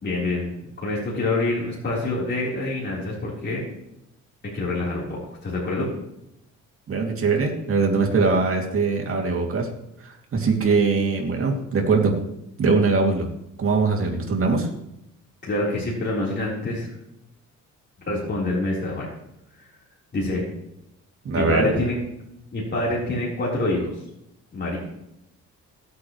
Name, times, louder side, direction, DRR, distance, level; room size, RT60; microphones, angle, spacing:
voice 1, 0.0-0.5 0.8-3.6 4.4-5.9 14.0-14.1 15.4-16.9 18.1-19.1 19.6-19.7 20.1-20.4 21.3-22.0 22.5-23.9 24.5-24.8, left 2 dB, 35° left, -6 dB, 4.1 m, -26 dB
voice 2, 6.9-9.7 10.0-12.1 12.6-13.3 13.6-14.7 21.2-21.7, right 4 dB, 45° right, 1 dB, 2.7 m, -22 dB
17.0 x 8.3 x 3.2 m, 0.82 s
cardioid pair, 90°, 30 cm